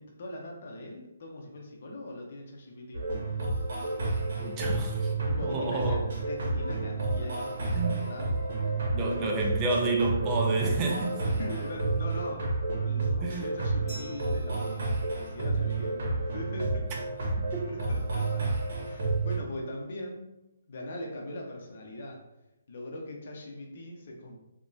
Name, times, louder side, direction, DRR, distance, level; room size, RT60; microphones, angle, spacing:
voice 1, 0.0-3.0 3.4-3.5 4.6-4.8 5.2-8.3 8.6-8.7 11.3-16.9 17.7-18.5 18.9-20.3 20.7-22.2 22.7-24.4, left 1 dB, 55° left, 0 dB, 0.6 m, -41 dB
sound 1, 2.9-19.4, right 3 dB, 60° right, 0.8 m, -30 dB
voice 2, 4.4-5.0 5.3-6.0 7.7-8.0 8.9-11.2 13.2-13.5, right 2 dB, 25° right, 1 dB, 0.4 m, -29 dB
sound 2, 6.4-18.2, right 1 dB, 45° right, 1.3 m, -48 dB
Glass, 13.9-16.3, equal, 15° left, 1.2 m, -51 dB
2.9 x 2.2 x 2.6 m, 0.91 s
hypercardioid pair, 150°, 0 cm